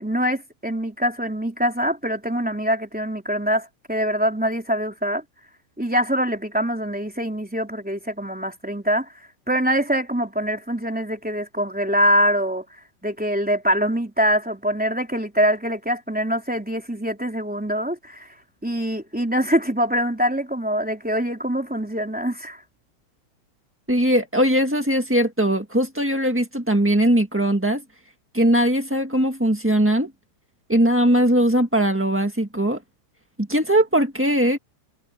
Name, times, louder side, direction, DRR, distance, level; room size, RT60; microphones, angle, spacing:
voice 1, 0.0-5.2 5.8-9.1 9.5-12.6 13.0-18.3 18.6-22.6, equal, 5° right, 3.1 m, -24 dB
voice 2, 23.9-27.8 28.3-30.1 30.7-32.8 33.4-34.6, right 1 dB, 20° right, 0.3 m, -20 dB
omnidirectional pair, 3.5 m